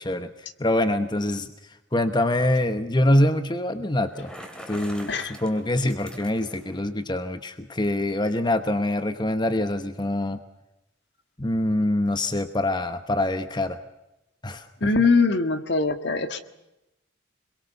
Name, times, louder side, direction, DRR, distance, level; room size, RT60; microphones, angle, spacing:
voice 1, 0.0-1.5 1.9-4.3 4.7-10.4 11.4-13.8 14.4-15.1, left 1 dB, 20° left, 9 dB, 1.0 m, -25 dB
Bicycle, 4.0-6.8, equal, 5° left, 2.7 m, -43 dB
voice 2, 14.8-16.4, left 4 dB, 60° left, 9 dB, 1.7 m, -22 dB
26.5 x 22.5 x 6.7 m, 0.93 s
head